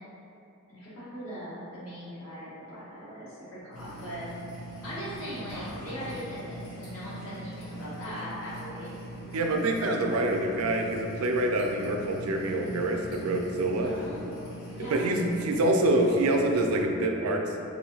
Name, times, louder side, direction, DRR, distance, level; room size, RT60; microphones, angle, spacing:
voice 1, 0.7-4.2 4.8-8.9 13.8-15.0, equal, 65° left, -10 dB, 1.3 m, -40 dB
sound 1, 3.7-16.8, right 1 dB, 85° left, 0.9 m, -42 dB
voice 2, 9.3-13.9 14.9-17.7, right 1 dB, 85° right, 2 dB, 0.4 m, -26 dB
3.6 x 2.7 x 2.7 m, 2.7 s
head